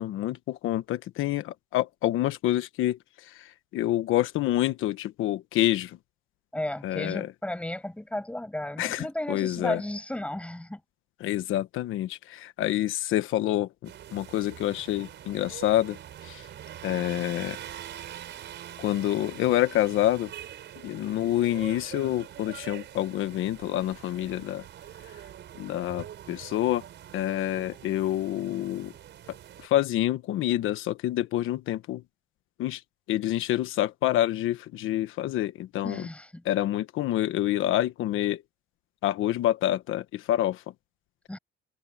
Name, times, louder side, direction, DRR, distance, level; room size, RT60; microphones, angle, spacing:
voice 1, 0.0-6.0 6.8-7.3 8.8-9.8 11.2-16.5 16.8-17.6 18.8-20.3 20.8-24.7 25.0-25.2 25.5-26.8 27.1-28.9 29.6-32.0 32.6-32.8 33.1-36.1 36.4-38.4 39.0-40.6, left 13 dB, 90° left, 1.2 m, -27 dB
voice 2, 6.5-10.8 35.8-36.4 41.3-41.4, left 1 dB, 5° left, 6.4 m, -34 dB
sound 1, 13.8-29.7, right 11 dB, 65° right, 4.7 m, -44 dB
cardioid pair, 130°, 20 cm